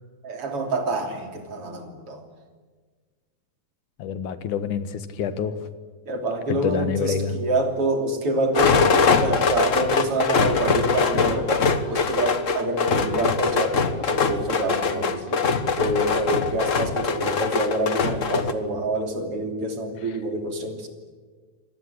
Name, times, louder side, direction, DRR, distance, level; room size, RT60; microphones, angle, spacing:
voice 1, 0.2-2.2 6.1-15.5 15.8-20.9, right 1 dB, 50° right, 5 dB, 3.9 m, -26 dB
voice 2, 4.0-5.6 6.5-7.4 20.0-20.1, left 7 dB, 80° left, 11 dB, 3.0 m, -27 dB
sound 1, 8.5-18.5, left 5 dB, 60° left, 0.8 m, -22 dB
26.5 x 19.5 x 9.9 m, 1.5 s
omnidirectional pair, 3.5 m